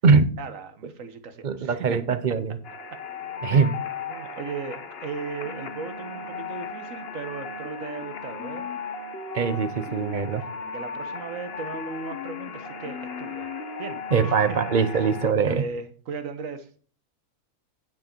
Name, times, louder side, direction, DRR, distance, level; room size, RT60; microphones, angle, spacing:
voice 1, 0.4-2.2 2.9-3.0 3.5-8.7 10.7-13.5 13.8-14.6 14.9-15.1 15.4-16.7, right 5 dB, 60° right, 1.5 m, -37 dB
voice 2, 1.4-2.6 3.4-3.8 9.3-10.4 14.1-15.6, right 5 dB, 40° right, 0.7 m, -22 dB
sound 1, 2.6-15.3, left 4 dB, 45° left, 1.0 m, -36 dB
9.5 x 7.9 x 4.5 m
omnidirectional pair, 1.6 m